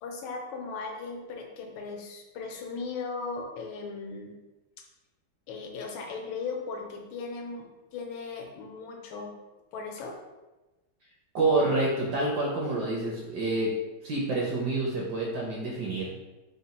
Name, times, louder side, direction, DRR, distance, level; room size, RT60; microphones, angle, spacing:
voice 1, 0.0-4.3 5.5-9.3 9.7-10.2, left 4 dB, 80° left, 2 dB, 1.4 m, -37 dB
voice 2, 11.3-13.7 14.0-16.1, right 2 dB, 70° right, -3 dB, 1.0 m, -27 dB
3.9 x 2.1 x 4.1 m, 1.1 s
omnidirectional pair, 2.3 m